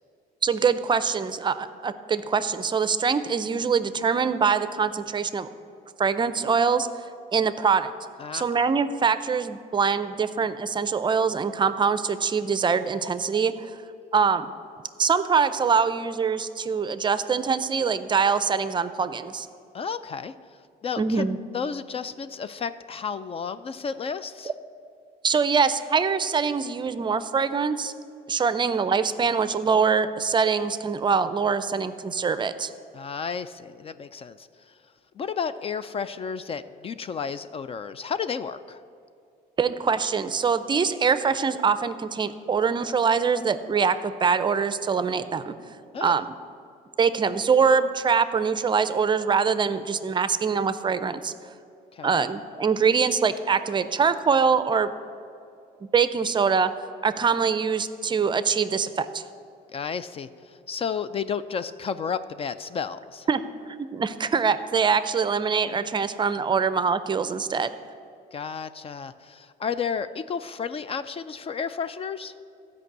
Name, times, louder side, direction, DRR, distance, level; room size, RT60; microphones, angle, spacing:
voice 1, 0.4-5.5 6.0-6.9 7.3-7.9 8.3-13.7 14.1-14.5 15.0-19.5 21.0-21.4 25.2-27.9 28.3-32.7 39.6-45.5 46.0-46.4 47.0-51.3 52.0-54.9 55.9-56.7 57.0-59.2 63.3-63.4 63.7-67.7, right 5 dB, 25° right, 13 dB, 0.5 m, -23 dB
voice 2, 8.2-8.6 19.7-20.3 20.8-21.2 21.5-24.5 32.9-34.8 35.2-38.8 45.9-46.2 51.9-52.3 59.7-63.3 68.3-72.3, left 6 dB, 35° left, 14 dB, 0.3 m, -32 dB
12.5 x 5.3 x 7.9 m, 2.5 s
cardioid pair, 110°, 17 cm